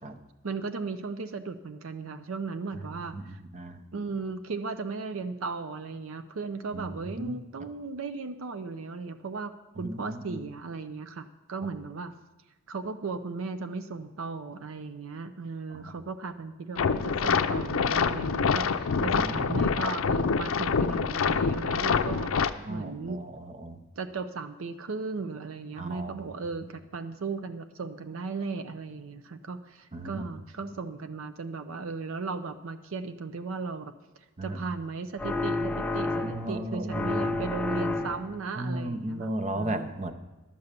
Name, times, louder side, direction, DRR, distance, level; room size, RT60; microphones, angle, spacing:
voice 1, 0.4-3.4 3.9-12.1 12.7-23.2 24.0-33.9 34.4-39.9, right 4 dB, 75° right, 10 dB, 0.5 m, -36 dB
voice 2, 6.7-7.4 9.8-10.4 15.8-15.9 19.0-19.7 22.7-23.8 25.8-26.1 29.9-30.2 34.4-34.6 36.2-37.2 38.6-40.1, right 1 dB, 35° right, 8 dB, 0.7 m, -35 dB
sound 1, 16.8-22.5, left 5 dB, 80° left, 0.5 m, -26 dB
sound 2, 35.2-36.6 36.9-38.4, left 2 dB, 5° left, 0.5 m, -30 dB
11.5 x 6.9 x 6.7 m, 1.1 s
head